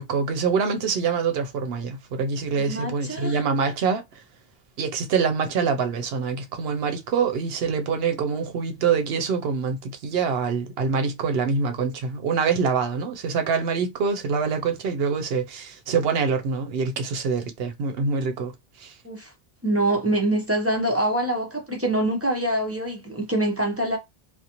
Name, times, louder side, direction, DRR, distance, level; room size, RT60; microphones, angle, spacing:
voice 1, 0.0-4.0 4.8-18.5 18.8-18.9, right 5 dB, 70° right, 0.9 m, -25 dB
voice 2, 2.6-3.4 19.0-19.3 19.6-24.0, right 1 dB, 20° right, 0.5 m, -25 dB
2.6 x 2.1 x 2.8 m
omnidirectional pair, 1.1 m